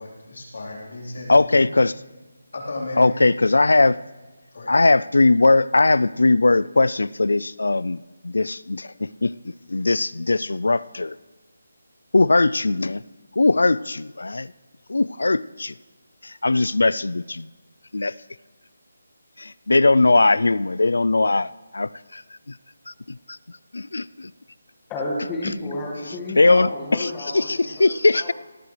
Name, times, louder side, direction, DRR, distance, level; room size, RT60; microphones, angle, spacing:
voice 1, 0.0-1.7 2.5-3.2 4.5-4.8, left 2 dB, 70° left, -3 dB, 3.9 m, -34 dB
voice 2, 1.3-1.9 3.0-4.0 4.7-11.2 12.1-13.0 13.4-14.5 14.9-15.7 16.2-17.5 17.9-18.1 19.4-22.2 22.5-22.6 22.9-23.2 23.7-24.3 26.4-28.3, left 2 dB, 85° left, 20 dB, 0.3 m, -20 dB
voice 3, 24.9-28.3, left 1 dB, 10° left, -2 dB, 1.7 m, -32 dB
18.5 x 14.0 x 3.3 m, 1.2 s
figure-of-eight pair, 170°, 0 cm